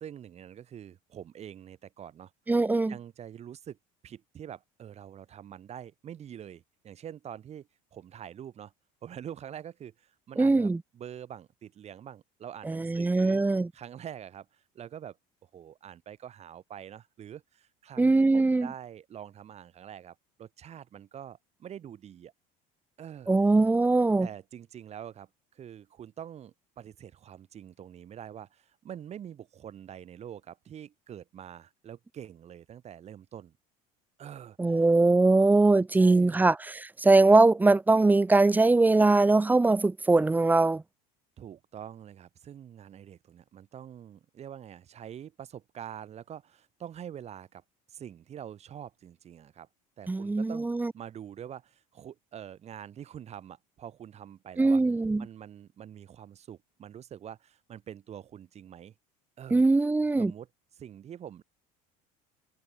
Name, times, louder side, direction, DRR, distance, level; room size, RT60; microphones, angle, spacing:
voice 1, 0.0-2.3 2.9-3.8 4.0-8.7 9.0-13.4 13.7-15.2 15.5-22.3 23.0-23.3 24.2-33.5 34.2-34.8 35.9-36.5 41.4-47.6 47.9-49.7 50.0-54.8 55.2-58.9 59.4-59.6 60.2-60.5 60.8-61.4, right 9 dB, 35° right, 1.7 m, -45 dB
voice 2, 2.5-2.9 10.4-10.8 12.6-13.7 18.0-18.7 23.3-24.3 34.6-40.8 50.1-50.9 54.6-55.3 59.5-60.3, right 3 dB, 10° right, 0.6 m, -22 dB
supercardioid pair, 120°, 18 cm